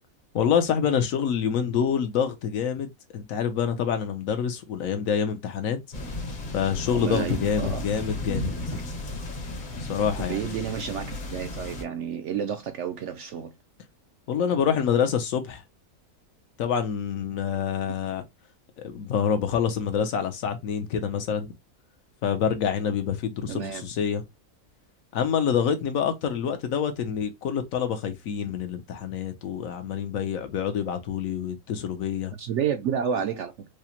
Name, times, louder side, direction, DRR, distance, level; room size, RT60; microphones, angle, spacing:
voice 1, 0.3-5.8 6.5-8.8 9.8-10.6 14.3-15.6 16.6-18.2 18.8-21.5 22.2-24.2 25.1-32.3, left 7 dB, 70° left, 1.1 m, -27 dB
sound 1, 5.9-11.8, left 2 dB, 40° left, 0.8 m, -34 dB
voice 2, 6.9-7.8 10.3-13.5 23.5-23.8 32.4-33.5, right 8 dB, 65° right, 0.7 m, -30 dB
4.9 x 2.0 x 2.8 m
omnidirectional pair, 1.6 m